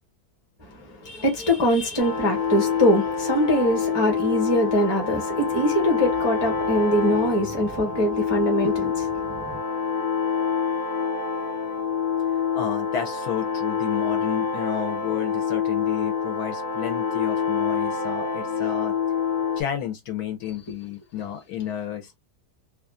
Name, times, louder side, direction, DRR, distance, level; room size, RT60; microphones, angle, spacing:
voice 1, 0.6-9.6, equal, 20° left, 0.8 m, -23 dB
sound 1, 2.0-19.6, left 6 dB, 85° left, 0.4 m, -26 dB
voice 2, 12.3-18.9 19.6-22.1, left 9 dB, 70° left, 1.1 m, -31 dB
2.8 x 2.3 x 2.3 m
omnidirectional pair, 1.8 m